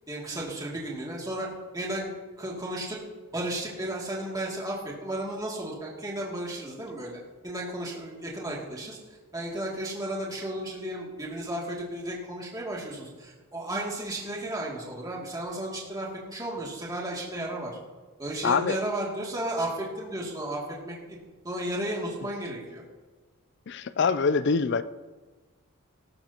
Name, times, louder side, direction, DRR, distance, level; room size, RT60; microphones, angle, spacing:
voice 1, 0.1-1.5 1.7-3.0 3.3-7.2 7.4-9.0 9.3-17.7 18.2-21.2 21.4-22.8, right 1 dB, 15° right, -4 dB, 2.6 m, -34 dB
voice 2, 18.4-18.8 23.7-24.8, left 5 dB, 50° left, 14 dB, 0.4 m, -24 dB
18.0 x 13.0 x 3.0 m, 1.3 s
head